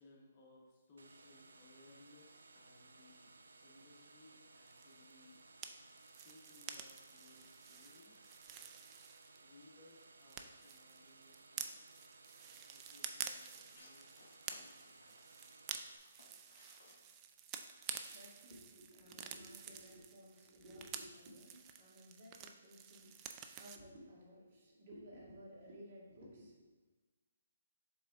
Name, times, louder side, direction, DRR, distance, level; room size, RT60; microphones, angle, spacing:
voice 1, 0.0-3.3 3.6-5.4 6.1-8.3 9.4-11.8 12.7-14.2 14.5-15.3, left 2 dB, 30° left, -4 dB, 1.4 m, -64 dB
sound 1, 1.0-16.0, right 3 dB, 85° right, 0.4 m, -61 dB
sound 2, 4.7-9.6 9.9-23.8, right 8 dB, 20° right, 0.4 m, -50 dB
sound 3, 13.7-18.8, left 2 dB, 65° left, 1.6 m, -65 dB
voice 2, 18.1-26.7, equal, 45° right, -5 dB, 2.0 m, -57 dB
7.2 x 3.8 x 3.7 m, 1.2 s
hypercardioid pair, 150°, 0 cm